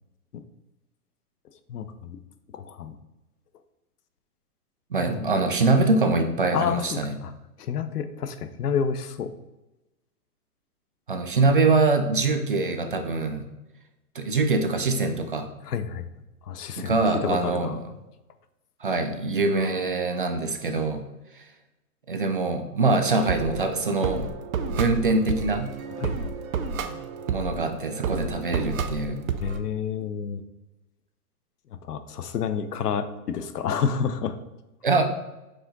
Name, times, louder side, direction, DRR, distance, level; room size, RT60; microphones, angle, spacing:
voice 1, 1.7-2.2 2.5-3.0 5.1-5.3 6.5-7.3 7.6-9.3 15.7-16.0 16.4-16.9 17.2-17.8 26.0-26.1 29.4-30.4 31.7-34.4, left 7 dB, 85° left, 11 dB, 0.8 m, -29 dB
voice 2, 4.9-7.2 11.1-13.5 14.1-15.5 16.8-17.8 18.8-21.0 21.3-21.4 22.1-24.3 24.7-25.7 27.3-29.2 34.8-35.0, right 3 dB, 35° right, 6 dB, 0.4 m, -24 dB
sound 1, 22.9-29.6, right 5 dB, 65° right, 0.8 m, -31 dB
6.3 x 4.9 x 3.9 m, 1.0 s
hypercardioid pair, 175°, 45 cm